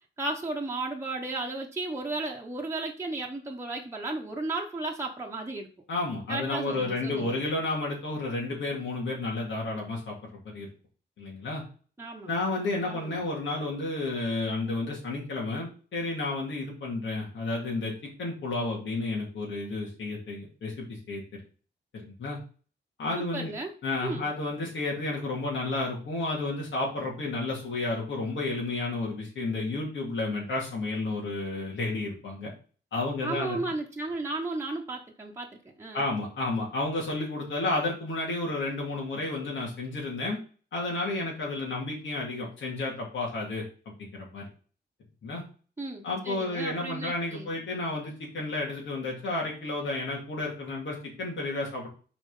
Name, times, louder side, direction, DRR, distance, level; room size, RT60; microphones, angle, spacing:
voice 1, 0.2-5.7 6.3-7.4 12.0-12.3 12.8-13.2 23.1-23.7 24.0-24.3 33.2-36.0 45.8-47.5, right 2 dB, 15° right, -1 dB, 1.0 m, -34 dB
voice 2, 5.9-10.1 10.4-10.7 11.2-11.6 12.2-17.9 18.2-21.2 21.9-22.4 23.0-23.5 23.8-32.5 32.9-33.6 35.9-40.4 40.7-43.6 44.1-44.5 45.2-45.4 46.0-51.9, left 2 dB, 80° left, -3 dB, 2.4 m, -31 dB
6.1 x 4.3 x 5.5 m, 0.39 s
wide cardioid pair, 120°, 19 cm